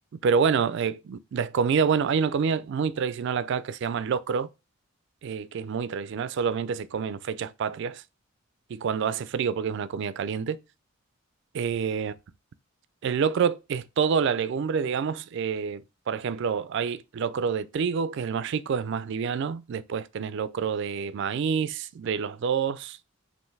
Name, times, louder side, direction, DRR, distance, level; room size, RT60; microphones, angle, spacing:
voice 1, 0.2-4.5 5.2-8.0 8.7-10.6 11.5-12.1 13.0-23.0, right 6 dB, 55° right, 0.3 m, -27 dB
5.4 x 2.6 x 3.2 m
head